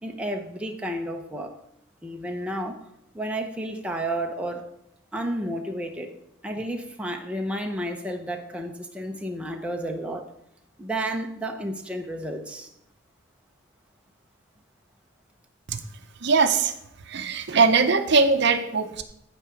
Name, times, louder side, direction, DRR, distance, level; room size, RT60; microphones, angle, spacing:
voice 1, 0.0-1.5 2.0-2.8 3.1-4.6 5.1-6.1 6.4-10.3 10.8-12.7, right 1 dB, 5° right, 2 dB, 0.8 m, -31 dB
voice 2, 16.2-16.7 17.1-19.0, right 4 dB, 60° right, 8 dB, 0.7 m, -21 dB
9.0 x 4.8 x 6.9 m, 0.77 s
head